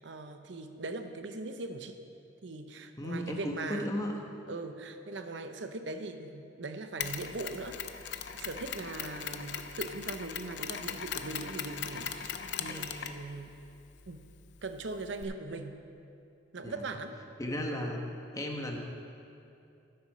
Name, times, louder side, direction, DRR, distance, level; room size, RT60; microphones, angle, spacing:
voice 1, 0.0-2.0 2.4-3.9 4.5-8.1 8.4-13.5 14.1-14.3 14.6-15.8 16.5-17.2, right 3 dB, 70° right, 8 dB, 0.7 m, -40 dB
voice 2, 3.0-4.2 12.7-13.1 16.6-16.8 17.4-18.1 18.3-18.8, left 1 dB, 20° left, 1 dB, 1.0 m, -35 dB
Mechanisms, 7.0-15.2, left 8 dB, 60° left, 0.5 m, -40 dB
12.5 x 7.7 x 5.6 m, 2.7 s
head